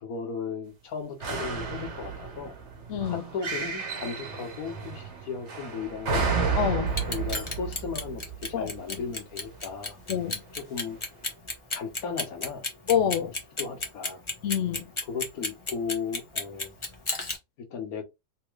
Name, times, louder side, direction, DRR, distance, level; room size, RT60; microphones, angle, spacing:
voice 1, 0.0-2.6 3.1-6.2 7.1-8.2 8.5-10.0 10.5-11.0 11.7-12.6 13.6-14.2 15.0-16.7 17.6-18.0, left 6 dB, 55° left, 1.4 m, -36 dB
sound 1, 1.2-9.5 10.2-10.3, right 5 dB, 50° right, 1.0 m, -32 dB
voice 2, 2.9-3.2 6.6-7.0 8.5-8.7 10.1-10.4 12.9-13.3 14.4-14.9, left 8 dB, 75° left, 0.6 m, -26 dB
Clock, 6.9-17.4, left 2 dB, 35° left, 0.5 m, -32 dB
3.5 x 2.9 x 3.0 m
omnidirectional pair, 2.0 m